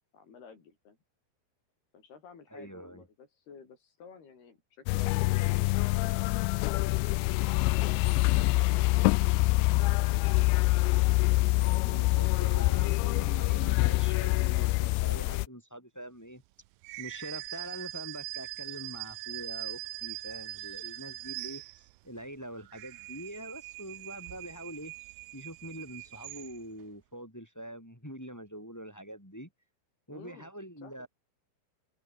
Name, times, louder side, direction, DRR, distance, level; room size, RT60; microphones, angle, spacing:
voice 1, 0.1-1.0 1.9-5.8 6.5-11.3 30.1-30.5 30.8-31.1, left 6 dB, 55° left, 6.7 m, -53 dB
voice 2, 2.5-3.0 11.8-16.4 17.0-24.9 25.3-29.5 30.1-31.1, right 1 dB, 5° left, 3.8 m, -44 dB
sound 1, 4.9-15.5, left 23 dB, 90° left, 2.6 m, -25 dB
sound 2, 16.8-22.1 22.6-26.8, right 23 dB, 90° right, 2.5 m, -42 dB
open air
omnidirectional pair, 5.7 m